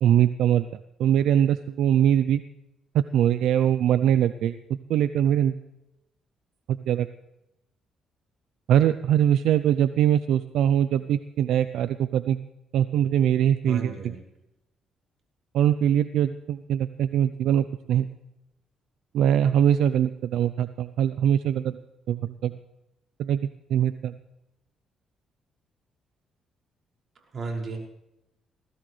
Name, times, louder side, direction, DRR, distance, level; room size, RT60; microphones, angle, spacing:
voice 1, 0.0-0.7 1.0-2.4 2.9-5.6 6.7-7.1 8.7-12.4 12.7-14.1 15.5-18.1 19.1-21.8 22.1-22.5 23.2-24.1, right 10 dB, 80° right, 12 dB, 0.5 m, -22 dB
voice 2, 13.6-14.2 27.3-27.8, right 4 dB, 45° right, 0 dB, 5.8 m, -33 dB
21.0 x 17.0 x 3.3 m, 0.87 s
cardioid pair, 90°, 0 cm